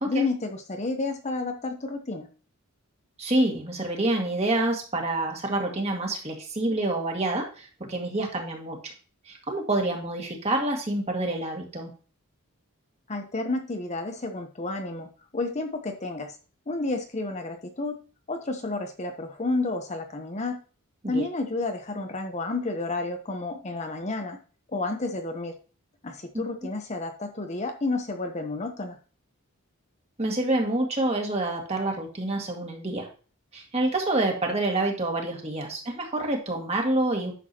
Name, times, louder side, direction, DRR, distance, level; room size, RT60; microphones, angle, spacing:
voice 1, 0.0-2.3 13.1-16.4 16.7-18.0 18.3-20.6 21.1-24.4 24.7-25.5 26.0-29.0, left 2 dB, 30° left, 5 dB, 0.8 m, -31 dB
voice 2, 3.2-8.9 9.3-11.9 21.0-21.2 26.3-26.5 30.2-33.1 33.5-37.3, right 2 dB, 30° right, 1 dB, 2.0 m, -27 dB
10.0 x 6.9 x 2.9 m, 0.37 s
head